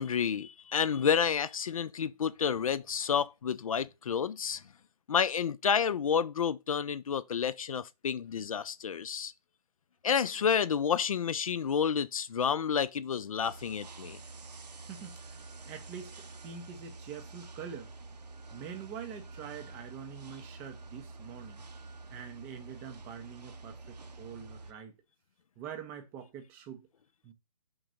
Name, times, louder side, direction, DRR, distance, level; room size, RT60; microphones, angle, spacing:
voice 1, 0.0-4.6 5.1-9.3 10.0-14.2, left 7 dB, 60° left, 0.5 m, -30 dB
sound 1, 13.4-24.7, right 3 dB, 85° right, 0.8 m, -48 dB
voice 2, 14.9-17.9 18.5-21.6 22.1-24.9 25.6-26.9 27.2-27.3, right 8 dB, 10° right, 0.5 m, -45 dB
5.2 x 4.0 x 5.9 m
hypercardioid pair, 155°, 20 cm